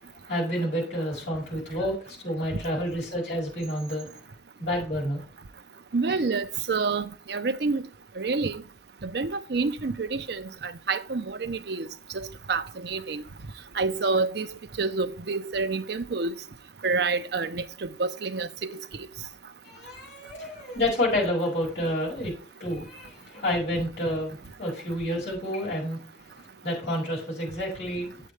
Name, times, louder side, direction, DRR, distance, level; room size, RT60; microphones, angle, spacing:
voice 1, 0.3-4.1 4.6-5.2 19.6-22.3 22.6-26.0 26.6-28.1, left 1 dB, 65° left, 5.4 m, -29 dB
voice 2, 5.9-7.8 8.2-8.6 9.0-11.9 12.1-13.2 13.8-14.5 14.8-16.3 16.8-18.5, right 4 dB, 60° right, 0.6 m, -28 dB
8.6 x 7.7 x 3.3 m
head